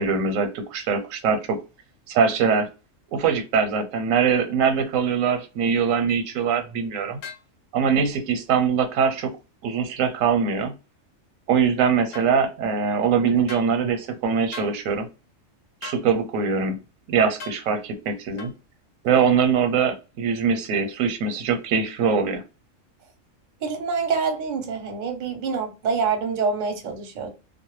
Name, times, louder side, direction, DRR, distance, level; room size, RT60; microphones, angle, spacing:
voice 1, 0.0-1.6 2.1-2.7 3.1-7.2 7.7-9.3 9.6-10.7 11.5-15.1 15.8-16.8 17.1-18.5 19.0-22.4, right 6 dB, 85° right, 1.0 m, -22 dB
sound 1, 7.2-7.5 12.1-12.3 13.5-13.7 14.5-14.8 15.8-16.1 17.4-17.6 18.4-18.6, left 5 dB, 55° left, 0.7 m, -38 dB
voice 2, 23.6-27.3, right 5 dB, 50° right, 0.6 m, -26 dB
2.3 x 2.1 x 3.0 m
omnidirectional pair, 1.4 m